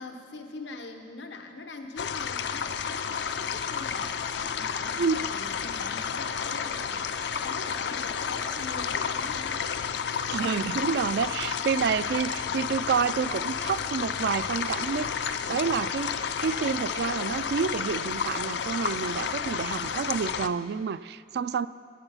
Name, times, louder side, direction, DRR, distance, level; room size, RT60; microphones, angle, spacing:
voice 1, 0.0-4.1 4.5-5.0 5.3-9.7 12.4-12.6, left 3 dB, 90° left, 5 dB, 0.9 m, -42 dB
sound 1, 2.0-20.5, left 7 dB, 75° left, 0.5 m, -31 dB
voice 2, 10.1-21.7, right 6 dB, 65° right, 15 dB, 0.3 m, -29 dB
15.0 x 10.5 x 5.6 m, 2.2 s
head